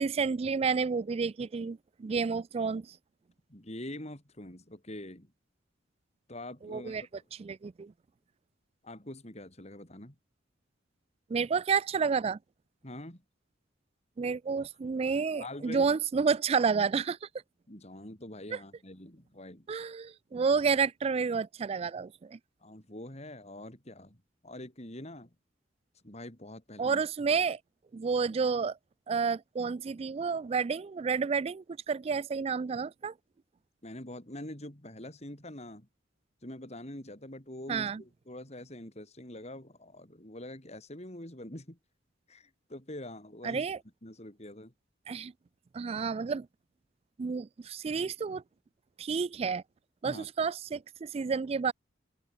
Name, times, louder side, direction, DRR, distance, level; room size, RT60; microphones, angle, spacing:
voice 1, 0.0-3.0 6.6-7.0 7.4-7.9 11.3-12.4 14.2-17.3 18.5-18.6 19.7-22.4 26.8-27.6 27.9-28.8 29.1-33.1 37.7-38.0 43.4-43.8 45.1-45.3 45.7-46.5 47.2-48.4 49.0-49.6 50.0-51.7, right 5 dB, 30° right, 0.3 m, -30 dB
voice 2, 3.5-5.3 6.3-7.2 8.8-10.2 12.8-13.2 15.4-15.9 17.7-19.7 20.3-20.4 22.6-25.3 26.0-27.0 33.8-35.9 36.4-41.8 42.3-43.7 44.0-44.7 50.0-50.3, left 1 dB, 35° left, 4.2 m, -45 dB
head